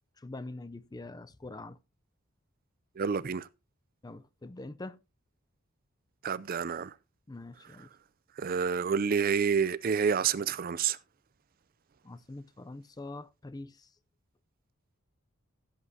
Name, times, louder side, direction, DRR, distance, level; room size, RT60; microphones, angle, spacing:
voice 1, 0.2-1.8 4.0-5.0 7.3-7.9 12.0-13.9, left 2 dB, 20° left, 0.5 m, -44 dB
voice 2, 3.0-3.5 6.2-6.9 8.4-11.0, right 6 dB, 45° right, 0.4 m, -28 dB
16.0 x 8.4 x 2.7 m
head